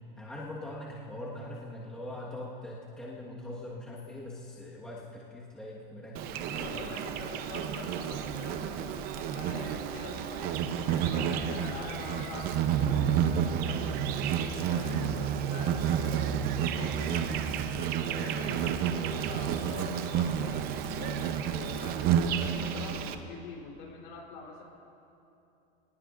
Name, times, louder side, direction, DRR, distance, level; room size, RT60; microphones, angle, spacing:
voice 1, 0.2-7.0, left 1 dB, ahead, -6 dB, 1.5 m, -42 dB
Insect, 6.2-23.2, right 8 dB, 30° right, 0.7 m, -30 dB
voice 2, 6.5-13.9 14.3-17.4 17.8-24.6, left 4 dB, 55° left, 0 dB, 3.8 m, -44 dB
24.5 x 18.5 x 2.6 m, 2.8 s
supercardioid pair, 155°, 29 cm